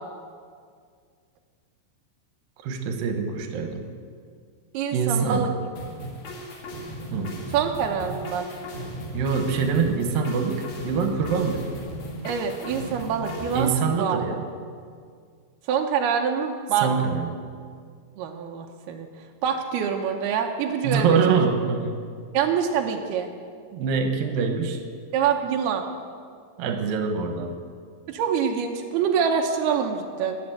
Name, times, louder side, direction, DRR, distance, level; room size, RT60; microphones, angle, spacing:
voice 1, 2.6-3.9 4.9-5.4 7.1-7.4 9.1-11.7 13.5-14.4 16.8-17.3 20.8-22.0 23.7-24.8 26.6-27.6, right 5 dB, 70° right, 5 dB, 2.3 m, -24 dB
voice 2, 4.7-5.5 7.5-8.5 12.2-14.2 15.7-16.9 18.2-19.1 19.4-21.4 22.3-23.3 25.1-25.8 28.1-30.4, right 7 dB, 90° right, 2 dB, 2.2 m, -25 dB
sound 1, 5.8-13.7, equal, 50° left, 3.6 m, -36 dB
20.0 x 8.4 x 7.9 m, 2.1 s
omnidirectional pair, 5.9 m